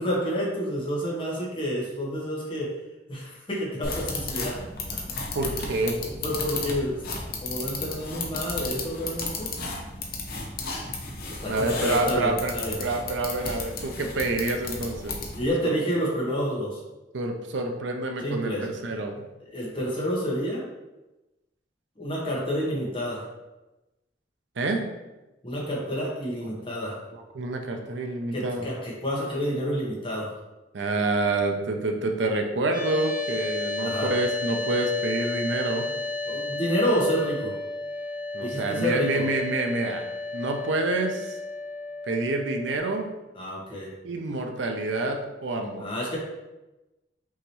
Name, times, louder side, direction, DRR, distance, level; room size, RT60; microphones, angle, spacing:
voice 1, 0.0-2.7 3.1-4.5 6.2-7.0 7.4-9.5 11.4-12.8 15.3-16.8 18.2-18.6 19.5-20.6 22.0-23.2 25.4-27.0 28.3-30.3 33.8-34.1 36.3-37.5 38.4-39.2 43.4-43.9 45.8-46.2, equal, 30° left, -4 dB, 1.2 m, -29 dB
sound 1, 3.8-15.5, left 3 dB, 55° left, 0.8 m, -34 dB
voice 2, 5.3-6.0 11.5-12.5 12.8-15.2 15.6-15.8 17.1-19.2 24.6-24.8 27.1-28.7 30.7-35.9 38.3-40.0 40.3-41.4 42.0-43.1 44.0-45.9, right 2 dB, 85° right, 4 dB, 0.6 m, -27 dB
sound 2, 32.7-42.8, left 2 dB, ahead, 1.1 m, -33 dB
5.6 x 3.0 x 3.1 m, 1.0 s
head